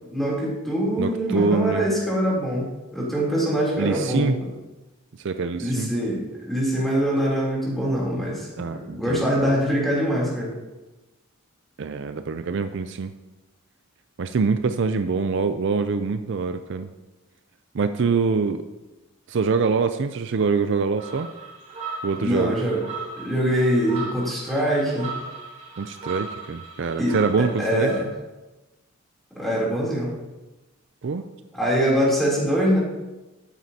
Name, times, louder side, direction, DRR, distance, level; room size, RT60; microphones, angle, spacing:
voice 1, 0.0-4.5 5.6-10.6 22.2-22.8 23.2-25.1 27.0-27.2 27.6-28.1 29.3-30.1 31.5-32.8, equal, ahead, -6 dB, 3.2 m, -23 dB
voice 2, 1.0-1.9 3.8-4.4 5.2-5.9 8.6-9.5 11.8-13.1 14.2-16.9 17.7-18.7 19.3-21.3 22.0-22.6 25.8-27.9 31.0-31.3, right 4 dB, 60° right, 9 dB, 0.4 m, -24 dB
sound 1, 21.0-28.0, right 4 dB, 40° right, 3.0 m, -37 dB
12.5 x 9.1 x 2.8 m, 1.1 s
head